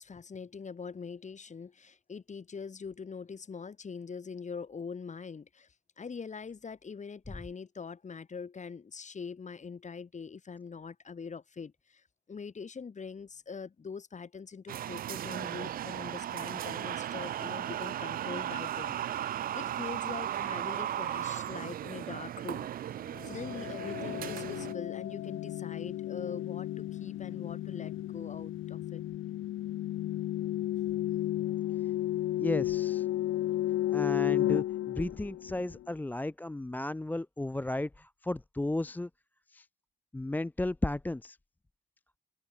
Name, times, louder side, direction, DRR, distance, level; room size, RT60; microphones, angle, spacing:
voice 1, 0.0-22.7 23.2-29.0 31.1-31.2, left 5 dB, 35° left, 3.7 m, -43 dB
sound 1, 14.7-24.7, right 11 dB, 50° right, 0.4 m, -36 dB
sound 2, 23.1-35.8, left 14 dB, 80° left, 1.3 m, -33 dB
voice 2, 32.4-33.1 33.9-39.1 39.5-39.7 40.1-41.4, left 2 dB, 10° left, 0.5 m, -34 dB
cardioid pair, 90°, 20 cm